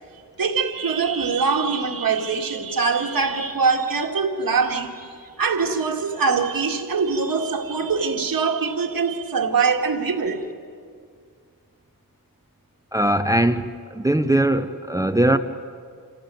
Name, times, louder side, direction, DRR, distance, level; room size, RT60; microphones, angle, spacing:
voice 1, 0.1-10.5, right 5 dB, 70° right, 3 dB, 2.1 m, -23 dB
voice 2, 12.9-15.4, right 1 dB, 10° right, 10 dB, 0.7 m, -20 dB
26.0 x 17.0 x 9.1 m, 2.2 s
wide cardioid pair, 105°, 36 cm